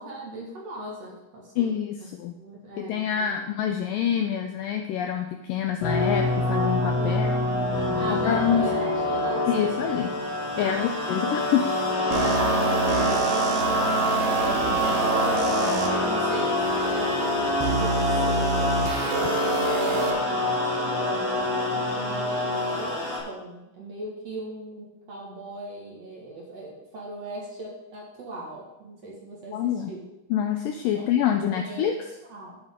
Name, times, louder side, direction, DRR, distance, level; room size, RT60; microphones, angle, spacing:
voice 1, 0.0-1.7 2.0-3.4 7.0-9.8 10.6-11.2 11.8-30.1 30.9-32.6, right 1 dB, 50° right, -2 dB, 2.3 m, -39 dB
voice 2, 1.6-2.4 2.8-7.4 8.1-8.7 9.5-10.1 10.6-11.7 29.5-29.9 30.3-32.0, left 9 dB, 90° left, 5 dB, 1.9 m, -26 dB
sound 1, 5.8-23.2, left 1 dB, 60° left, 5.9 m, -25 dB
sound 2, 12.1-15.9 16.6-16.7 17.6-20.1, right 3 dB, 75° right, 3.3 m, -27 dB
10.5 x 8.9 x 3.7 m, 0.91 s
omnidirectional pair, 4.6 m